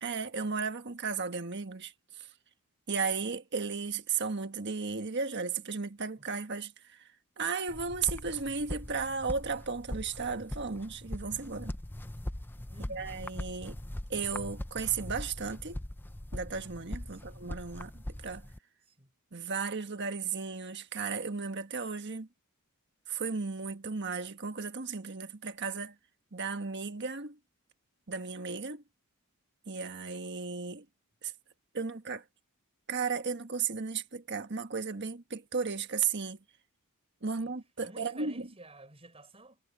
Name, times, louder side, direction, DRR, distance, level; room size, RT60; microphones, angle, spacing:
voice 1, 0.0-2.3 2.9-7.0 7.4-11.7 12.9-13.8 14.1-15.8 16.3-18.5 19.3-22.3 23.1-25.9 26.3-27.4 28.1-28.8 29.7-30.8 31.2-31.3 31.7-32.2 32.9-36.4 37.2-38.5, right 5 dB, 50° right, 1.5 m, -35 dB
sound 1, 7.7-18.6, left 1 dB, 10° left, 0.5 m, -41 dB
voice 2, 12.7-13.1 17.1-17.5 18.8-19.1 37.4-37.5 37.8-39.6, right 2 dB, 25° right, 6.2 m, -53 dB
head